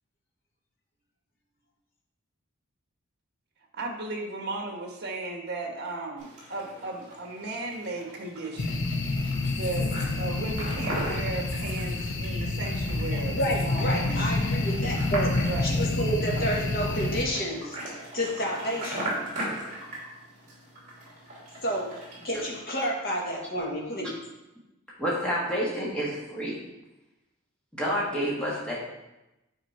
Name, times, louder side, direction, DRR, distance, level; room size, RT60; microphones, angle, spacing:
voice 1, 3.7-8.9 9.5-14.3 15.4-15.7 16.3-16.5 22.2-22.3, right 2 dB, 50° right, 2 dB, 1.4 m, -36 dB
sound 1, 6.2-22.6, right 1 dB, 35° right, 2.6 m, -39 dB
sound 2, 8.6-17.2, left 2 dB, 60° left, 0.8 m, -28 dB
voice 2, 13.3-15.3 15.6-17.8 18.1-19.1 21.6-21.9 22.2-24.2, equal, 45° left, -3 dB, 1.7 m, -30 dB
voice 3, 25.0-26.6 27.7-28.8, equal, 5° left, -6 dB, 1.7 m, -29 dB
9.2 x 4.4 x 4.3 m, 0.97 s
head